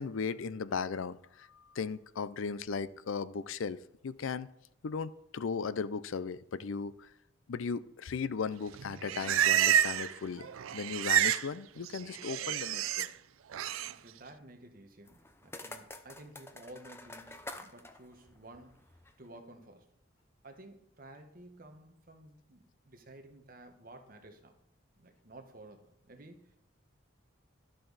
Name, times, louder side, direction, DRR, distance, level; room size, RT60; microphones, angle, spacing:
voice 1, 0.0-3.8 4.0-4.5 4.8-7.1 7.5-13.1, left 5 dB, 70° left, 16 dB, 0.5 m, -37 dB
Livestock farm animals working animals, 8.7-10.2 10.4-11.5 11.8-13.1 13.5-13.9, right 10 dB, 80° right, 0.4 m, -29 dB
voice 2, 13.9-18.9 19.2-19.9 20.4-24.5 25.0-26.6, right 1 dB, 45° right, 5 dB, 1.2 m, -53 dB
sound 1, 15.1-19.2, left 2 dB, 10° left, 0.6 m, -49 dB
12.0 x 7.7 x 4.0 m, 0.83 s
head